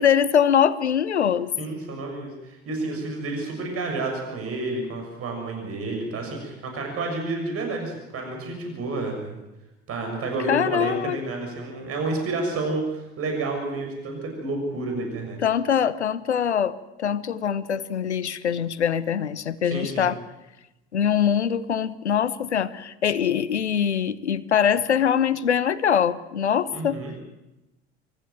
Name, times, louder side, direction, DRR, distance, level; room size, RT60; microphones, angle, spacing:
voice 1, 0.0-1.5 10.5-11.2 15.4-20.2 20.9-27.0, left 8 dB, 85° left, 17 dB, 0.9 m, -23 dB
voice 2, 1.6-9.4 9.9-15.4 19.6-20.1 26.7-27.1, right 2 dB, 45° right, 2 dB, 6.7 m, -30 dB
25.0 x 15.0 x 9.1 m, 0.97 s
figure-of-eight pair, 65°, 33 cm